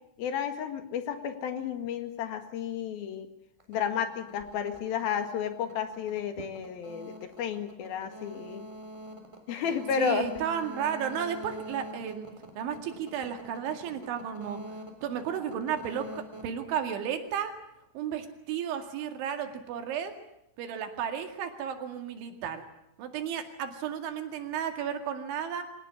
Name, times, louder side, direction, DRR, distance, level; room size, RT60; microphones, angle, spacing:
voice 1, 0.2-3.3 3.7-8.7 9.5-10.3, left 8 dB, 60° left, 8 dB, 3.2 m, -32 dB
sound 1, 3.6-17.5, equal, 10° right, 2.9 m, -45 dB
voice 2, 9.9-14.6 15.0-17.5 17.9-20.1 20.6-22.6 23.0-25.6, right 8 dB, 75° right, 6 dB, 4.5 m, -33 dB
24.5 x 18.5 x 9.8 m, 0.84 s
omnidirectional pair, 5.5 m